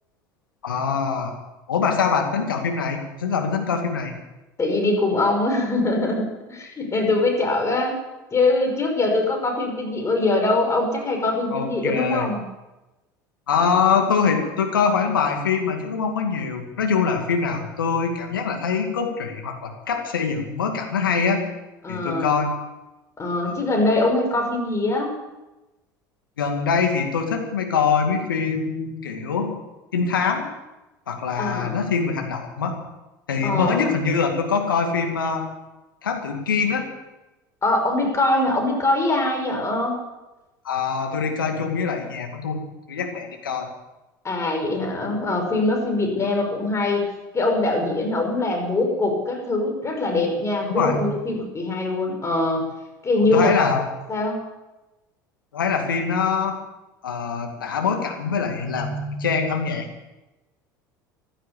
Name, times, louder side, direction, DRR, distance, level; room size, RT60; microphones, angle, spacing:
voice 1, 0.6-1.3 1.7-4.1 11.5-12.3 13.5-21.5 21.9-22.5 23.4-23.6 26.4-29.6 29.9-30.4 31.1-32.8 33.3-35.4 36.0-36.9 40.6-42.6 42.9-43.7 50.7-51.1 53.2-53.8 55.5-56.5 57.0-59.9, left 5 dB, 80° left, 3 dB, 2.3 m, -23 dB
voice 2, 4.6-8.0 8.3-12.4 21.8-22.3 23.2-25.2 31.4-32.0 33.4-33.9 37.6-40.0 44.2-47.0 47.3-52.7 53.0-53.6 54.1-54.4, left 2 dB, 25° left, 2 dB, 5.6 m, -23 dB
15.5 x 12.0 x 7.0 m, 1.0 s
hypercardioid pair, 70°, 11 cm